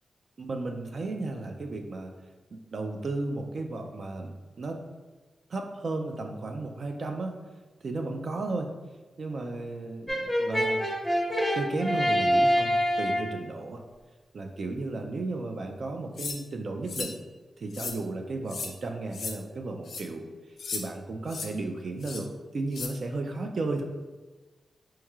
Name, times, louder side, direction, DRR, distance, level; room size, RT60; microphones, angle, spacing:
voice 1, 0.4-2.1 2.5-4.8 5.5-7.3 7.8-8.7 9.2-10.8 11.5-13.8 14.3-17.2 17.6-20.2 20.7-22.3 22.5-23.8, right 2 dB, 60° right, 3 dB, 0.3 m, -34 dB
Brass instrument, 10.1-13.4, equal, 5° right, 0.7 m, -25 dB
sound 1, 16.2-16.4 16.9-17.1 17.7-18.0 18.5-18.7 19.1-19.3 19.8-20.0 20.6-20.8 21.3-21.5 22.0-22.2 22.7-22.9, left 4 dB, 90° left, 0.4 m, -35 dB
4.4 x 3.0 x 2.3 m, 1.2 s
wide cardioid pair, 105°, 0 cm